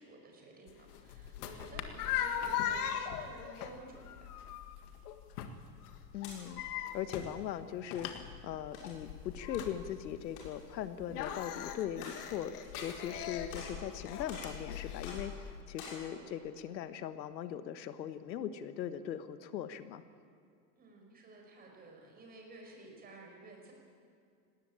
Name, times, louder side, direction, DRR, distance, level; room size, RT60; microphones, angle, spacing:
voice 1, 0.0-4.3 13.0-13.2 16.1-16.4 20.7-23.7, right 2 dB, 20° right, 1 dB, 5.1 m, -53 dB
sound 1, 0.7-15.6, left 9 dB, 65° left, 1.9 m, -40 dB
voice 2, 6.1-6.6 6.9-20.0, left 10 dB, 90° left, 11 dB, 1.4 m, -40 dB
sound 2, 6.1-6.4 6.9-7.3 7.9-8.2 8.7-9.0 9.5-9.7 10.3-10.7 11.2-11.3 11.9-12.3 12.6-13.2 13.5-13.8 14.3-14.6 15.0-15.2 15.7-16.1, left 4 dB, 45° left, 6.7 m, -48 dB
19.0 x 18.0 x 8.9 m, 2.3 s
supercardioid pair, 150°, 50 cm